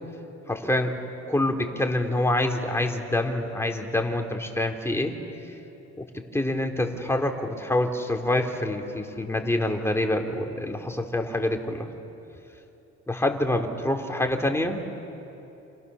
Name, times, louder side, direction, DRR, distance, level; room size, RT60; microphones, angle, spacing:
voice 1, 0.5-0.9 1.3-5.2 6.0-6.1 6.3-11.9 13.1-14.8, left 1 dB, 10° left, 3 dB, 3.3 m, -26 dB
29.5 x 28.0 x 7.0 m, 2.9 s
cardioid pair, 90°, 30 cm